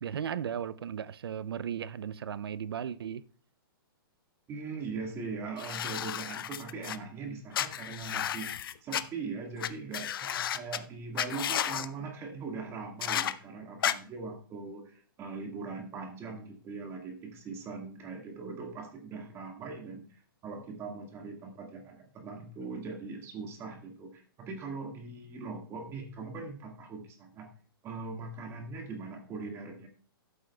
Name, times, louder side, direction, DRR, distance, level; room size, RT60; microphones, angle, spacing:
voice 1, 0.0-3.2, right 8 dB, 85° right, 0.5 m, -36 dB
voice 2, 4.5-27.5 27.8-29.9, right 4 dB, 20° right, 1.8 m, -41 dB
sound 1, 5.6-7.0 7.5-9.0 9.6-9.7 9.9-10.8 11.2-11.9 13.0-13.3 13.8-13.9, left 10 dB, 65° left, 0.6 m, -32 dB
13.5 x 7.8 x 2.3 m
hypercardioid pair, 150°, 12 cm